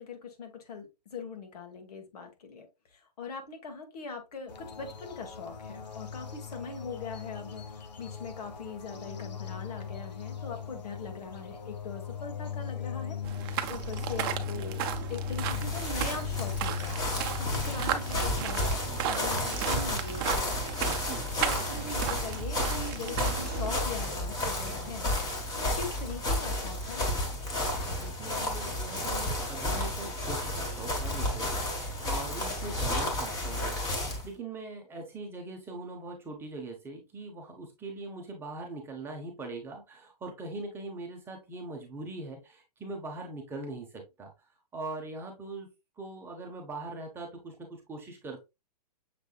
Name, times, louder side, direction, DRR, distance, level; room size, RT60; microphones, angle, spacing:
voice 1, 0.0-2.7 2.9-20.7 21.4-25.1 25.6-27.1, left 4 dB, 65° left, 5 dB, 1.7 m, -41 dB
sound 1, 4.5-23.8, left 8 dB, 85° left, 1.1 m, -40 dB
sound 2, 13.2-23.8, right 10 dB, 35° right, 0.7 m, -36 dB
sound 3, 15.2-34.3, left 1 dB, 20° left, 1.5 m, -32 dB
voice 2, 20.8-21.3 27.8-44.3 44.7-45.7 46.0-48.4, right 2 dB, 10° right, 1 dB, 0.9 m, -41 dB
6.7 x 3.4 x 2.4 m, 0.23 s
hypercardioid pair, 150°, 21 cm